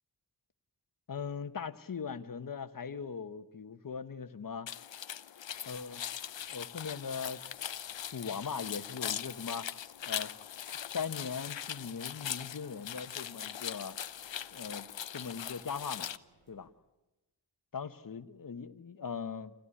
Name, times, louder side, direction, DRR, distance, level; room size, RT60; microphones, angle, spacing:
voice 1, 1.1-4.7 5.6-6.0 6.5-7.4 8.1-9.7 10.1-10.3 10.9-14.0 14.5-14.9 15.1-16.1 16.5-16.7 17.7-19.5, left 6 dB, 50° left, 10 dB, 1.1 m, -40 dB
sound 1, 4.7-16.2, left 9 dB, 80° left, 0.8 m, -41 dB
sound 2, 5.5-16.7, right 2 dB, 80° right, 5.9 m, -70 dB
27.0 x 15.5 x 9.8 m, 1.0 s
wide cardioid pair, 115°, 44 cm